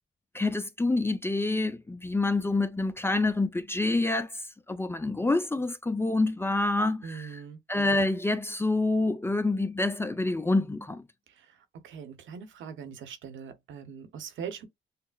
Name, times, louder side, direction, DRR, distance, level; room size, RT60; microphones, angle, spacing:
voice 1, 0.3-4.4 4.7-7.4 7.7-11.0, left 2 dB, 10° left, 0.5 m, -27 dB
voice 2, 7.0-7.6 11.4-11.5 11.8-14.7, right 7 dB, 75° right, 0.9 m, -41 dB
5.8 x 2.0 x 2.4 m
cardioid pair, 90°, 20 cm